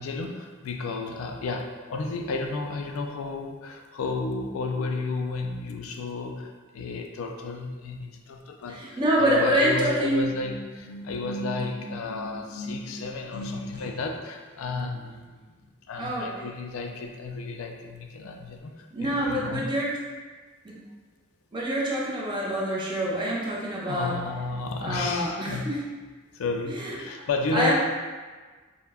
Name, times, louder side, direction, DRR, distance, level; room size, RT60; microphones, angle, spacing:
voice 1, 0.0-15.6 15.9-19.6 23.9-25.7 26.3-27.7, left 3 dB, 75° left, 3 dB, 0.3 m, -32 dB
voice 2, 8.7-10.3 16.0-16.3 18.9-20.0 20.6-20.8 21.5-24.2 24.8-25.8 26.7-27.0 27.5-27.7, equal, 20° right, -5 dB, 0.5 m, -26 dB
2.2 x 2.1 x 3.3 m, 1.4 s
head